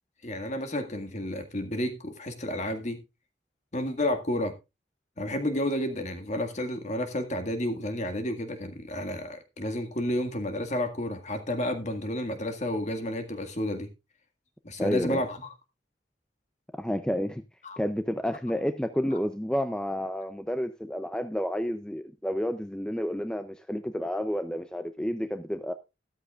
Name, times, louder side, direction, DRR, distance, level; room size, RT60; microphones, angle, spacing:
voice 1, 0.2-3.0 3.7-4.5 5.2-13.9 14.6-15.5 17.6-17.8, left 1 dB, 40° left, 1.8 m, -31 dB
voice 2, 14.8-15.2 16.7-17.4 17.8-25.7, equal, 5° left, 0.5 m, -30 dB
13.0 x 12.5 x 2.4 m
head